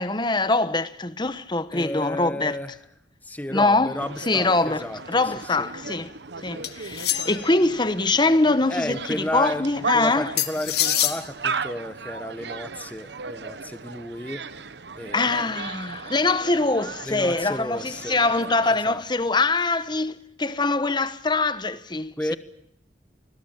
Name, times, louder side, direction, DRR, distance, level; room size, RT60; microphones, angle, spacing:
voice 1, 0.0-2.6 3.5-3.9 4.3-6.1 6.4-10.3 15.1-22.3, left 3 dB, 25° left, 1.1 m, -23 dB
voice 2, 1.7-2.7 3.2-5.7 8.7-14.5 14.9-15.3 17.1-18.2 18.8-19.0 22.2-22.4, left 1 dB, 10° left, 1.4 m, -32 dB
sound 1, 4.0-18.7, right 4 dB, 65° right, 1.0 m, -36 dB
sound 2, 6.6-7.6 10.4-11.2, left 12 dB, 60° left, 2.0 m, -25 dB
28.0 x 21.5 x 7.4 m
head